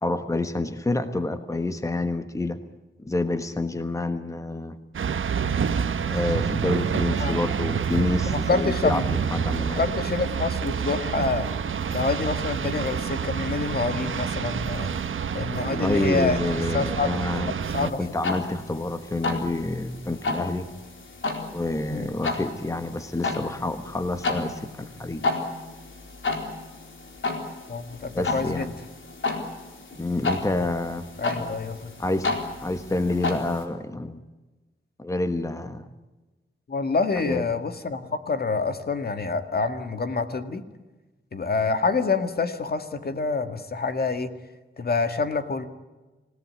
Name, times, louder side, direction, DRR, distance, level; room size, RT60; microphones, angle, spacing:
voice 1, 0.0-2.6 3.0-4.8 6.1-9.8 15.6-20.7 21.5-25.3 28.1-28.7 30.0-31.1 32.0-32.3 32.6-34.2 35.0-35.9 37.2-37.4, left 2 dB, 15° left, 9 dB, 1.3 m, -28 dB
sound 1, 4.9-17.9, right 7 dB, 85° right, 1.3 m, -28 dB
voice 2, 8.2-9.0 9.8-11.5 11.9-14.9 15.3-16.4 16.7-17.1 17.5-18.2 21.9-22.1 27.7-28.7 31.2-31.9 36.7-40.6 41.3-44.3 44.8-45.7, left 4 dB, 50° left, 8 dB, 2.0 m, -27 dB
sound 2, 17.6-33.6, left 3 dB, 75° left, 4.3 m, -32 dB
27.0 x 17.5 x 9.8 m, 1.2 s
wide cardioid pair, 110°, 20 cm